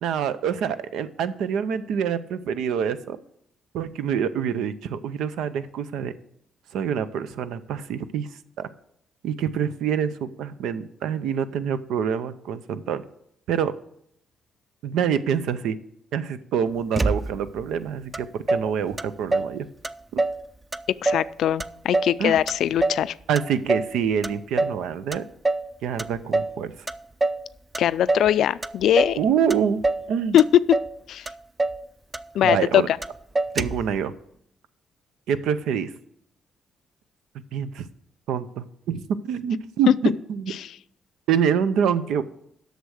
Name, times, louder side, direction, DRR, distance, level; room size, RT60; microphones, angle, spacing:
voice 1, 0.0-3.2 3.7-6.1 6.7-8.3 8.6-8.7 9.2-13.0 13.5-13.7 14.8-15.8 16.1-19.7 20.1-20.2 22.2-22.4 23.3-25.3 25.8-26.7 29.2-29.8 30.1-30.4 32.4-32.9 33.5-34.1 35.3-35.9 37.5-37.9 38.3-40.5 41.3-42.2, right 7 dB, 85° right, 13 dB, 0.6 m, -26 dB
Motor vehicle (road), 16.9-17.6 18.1-18.2 18.5-19.6 19.8-20.4 20.7-21.3 21.6-23.1 23.3-23.9 24.2-24.8 25.1-25.7 26.0-26.6 26.9-27.5 27.7-28.3 28.6-29.2 29.5-30.1 30.4-31.0 31.3-31.4 31.6-31.8 32.1-32.7 33.0-33.1 33.3-33.9, right 2 dB, 20° right, 0.4 m, -25 dB
voice 2, 21.0-23.1 27.8-29.2 30.3-30.4 30.7-30.8 31.1-31.3 32.3-33.0 40.6-40.7, left 11 dB, 75° left, 17 dB, 0.3 m, -21 dB
8.1 x 6.6 x 6.4 m, 0.73 s
cardioid pair, 90°, 0 cm